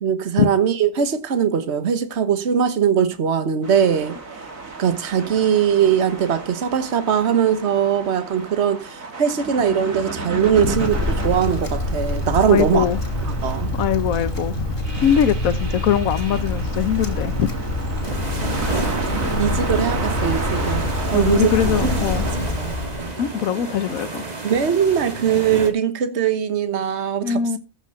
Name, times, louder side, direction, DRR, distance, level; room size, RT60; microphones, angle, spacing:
voice 1, 0.0-4.1 4.8-12.8 13.3-13.7 18.1-18.2 19.1-21.5 22.6-22.7 24.4-27.6, right 8 dB, 55° right, 1.4 m, -21 dB
sound 1, 3.6-22.3, right 3 dB, 75° right, 2.8 m, -32 dB
Wind, 10.3-23.1, left 2 dB, 40° left, 2.9 m, -26 dB
voice 2, 12.5-13.0 13.7-17.5 21.1-22.3 23.2-24.2 27.2-27.6, left 9 dB, 90° left, 1.3 m, -21 dB
sound 2, 18.0-25.7, right 3 dB, 30° right, 1.9 m, -30 dB
14.0 x 5.9 x 5.7 m
omnidirectional pair, 1.4 m